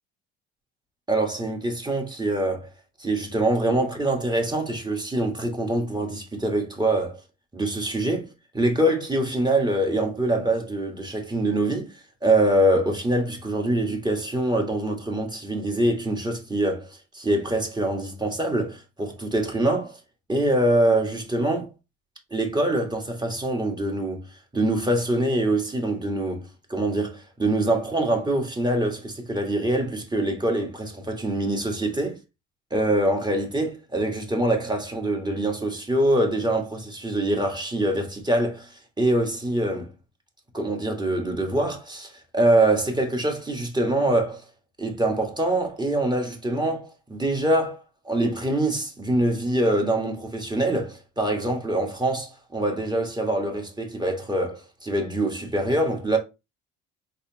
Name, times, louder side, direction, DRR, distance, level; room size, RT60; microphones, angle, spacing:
voice 1, 1.1-2.7 3.0-7.2 7.5-8.3 8.5-11.9 12.2-16.9 17.1-20.0 20.3-21.7 22.3-24.3 24.5-32.2 32.7-39.9 40.5-44.4 44.8-56.2, right 1 dB, 15° right, 1.6 m, -24 dB
4.2 x 3.3 x 2.8 m
hypercardioid pair, 65°, 33 cm